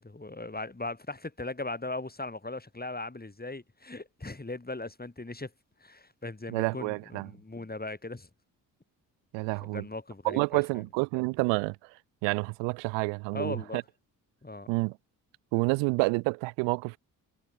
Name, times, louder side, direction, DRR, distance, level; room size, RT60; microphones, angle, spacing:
voice 1, 0.0-5.5 5.8-8.3 9.6-10.6 13.3-13.8 14.4-14.7, left 2 dB, 20° left, 7.5 m, -38 dB
voice 2, 6.5-7.3 9.3-9.8 10.2-11.8 12.2-13.8 14.7-15.0 15.5-17.0, right 30 dB, 85° right, 1.1 m, -29 dB
hypercardioid pair, 45°, 43 cm